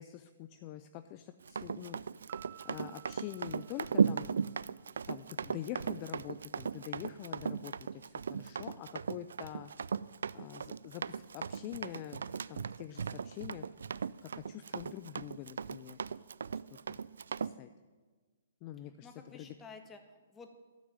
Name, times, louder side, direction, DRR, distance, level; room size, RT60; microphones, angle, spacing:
voice 1, 0.0-2.0 2.6-4.3 5.1-9.7 10.3-13.7 14.2-16.0 16.9-17.0 17.4-17.7 18.6-19.5, left 13 dB, 35° left, 10 dB, 0.5 m, -45 dB
Run, 1.4-17.5, right 6 dB, 80° right, 0.3 m, -36 dB
Piano, 2.3-4.9, right 18 dB, 35° right, 0.6 m, -57 dB
voice 2, 17.4-17.7 18.8-20.5, left 4 dB, 15° left, 6 dB, 1.5 m, -53 dB
13.0 x 6.2 x 8.8 m, 1.4 s
hypercardioid pair, 140°, 0 cm